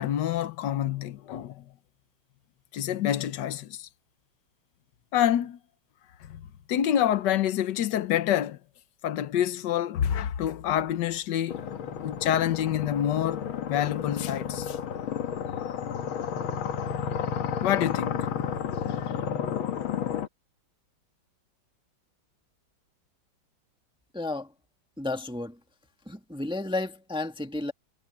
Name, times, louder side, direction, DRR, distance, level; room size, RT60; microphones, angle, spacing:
voice 1, 0.0-1.7 2.7-3.9 5.1-5.6 6.2-8.6 9.0-11.6 12.0-14.8 17.6-18.3 19.0-19.1, left 11 dB, 65° left, 1.5 m, -27 dB
sound 1, 11.5-20.3, left 8 dB, 85° left, 2.1 m, -31 dB
voice 2, 24.1-24.5 25.0-25.6 26.1-27.7, left 2 dB, 5° right, 1.3 m, -32 dB
omnidirectional pair, 2.2 m